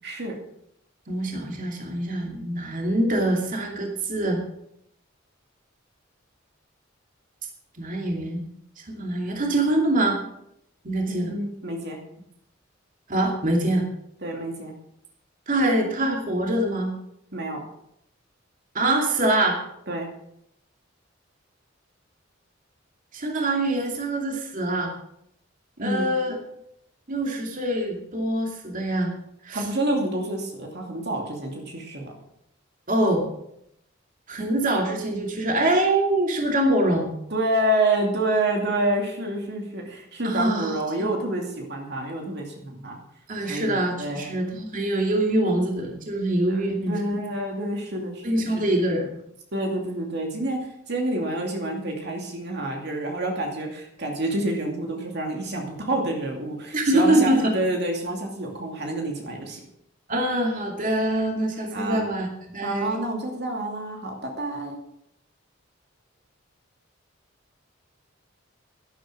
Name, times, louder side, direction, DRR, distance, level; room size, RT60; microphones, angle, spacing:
voice 1, 0.0-0.3 11.1-12.0 14.2-14.7 17.3-17.6 19.9-20.1 25.8-26.1 29.5-32.1 37.3-43.0 43.5-44.3 46.5-48.7 49.5-50.6 50.9-59.6 61.7-62.1 62.6-64.8, right 1 dB, 60° right, 1 dB, 2.6 m, -28 dB
voice 2, 1.1-4.4 7.8-8.4 8.9-10.2 10.8-11.3 13.1-13.8 15.5-16.9 18.7-19.6 23.1-24.9 25.8-26.4 27.1-29.1 29.4-29.6 32.9-33.2 34.3-37.1 40.2-40.7 43.3-46.9 48.2-49.1 56.7-57.5 60.1-62.3 62.5-63.0, right 1 dB, 40° right, 1 dB, 2.6 m, -24 dB
12.0 x 11.0 x 6.3 m, 0.76 s
head